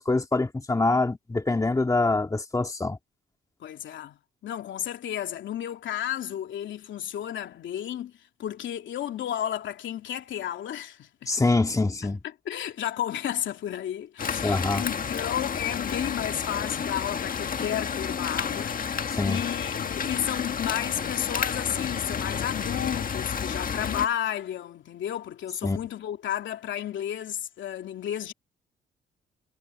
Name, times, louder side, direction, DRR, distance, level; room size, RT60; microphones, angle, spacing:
voice 1, 0.0-3.0 11.3-12.2 14.4-14.8 19.1-19.4 25.6-25.8, left 3 dB, 15° left, 2.0 m, -25 dB
voice 2, 3.6-8.1 8.4-11.3 12.0-28.3, left 10 dB, 70° left, 3.0 m, -32 dB
sound 1, 14.2-24.1, left 6 dB, 45° left, 1.7 m, -31 dB
cardioid pair, 90°, 20 cm